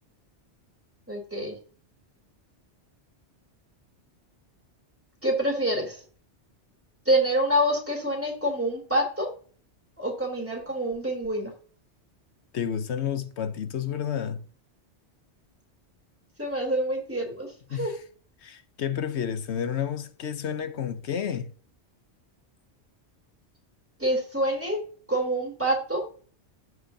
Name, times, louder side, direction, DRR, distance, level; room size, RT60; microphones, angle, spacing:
voice 1, 1.1-1.6 5.2-6.0 7.1-9.3 10.0-11.5 16.4-18.0 24.0-24.8 25.1-26.1, right 1 dB, 10° right, 3.5 m, -26 dB
voice 2, 12.5-14.4 17.7-18.0 18.4-21.5, left 8 dB, 75° left, 1.1 m, -30 dB
14.5 x 6.2 x 2.8 m
omnidirectional pair, 1.2 m